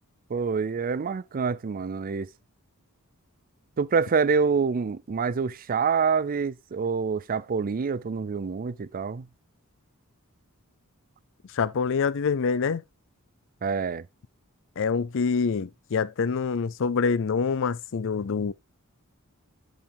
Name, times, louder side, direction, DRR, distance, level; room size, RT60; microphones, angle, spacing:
voice 1, 0.3-2.3 3.8-9.3 13.6-14.1, right 5 dB, 40° right, 0.4 m, -26 dB
voice 2, 11.5-12.8 14.8-18.5, left 5 dB, 60° left, 0.5 m, -26 dB
10.5 x 4.9 x 3.4 m
head